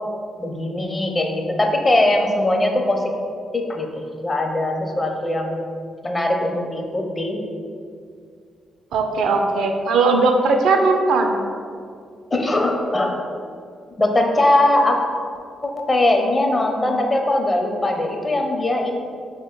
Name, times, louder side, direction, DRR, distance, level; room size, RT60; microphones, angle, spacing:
voice 1, 0.4-3.1 3.5-3.9 4.2-5.6 6.0-7.4 12.3-13.2 14.0-15.0 15.6-19.0, left 1 dB, 30° left, 2 dB, 0.6 m, -20 dB
voice 2, 8.9-11.4, right 3 dB, 75° right, 4 dB, 0.4 m, -18 dB
4.9 x 2.2 x 3.7 m, 2.3 s
supercardioid pair, 50°, 0 cm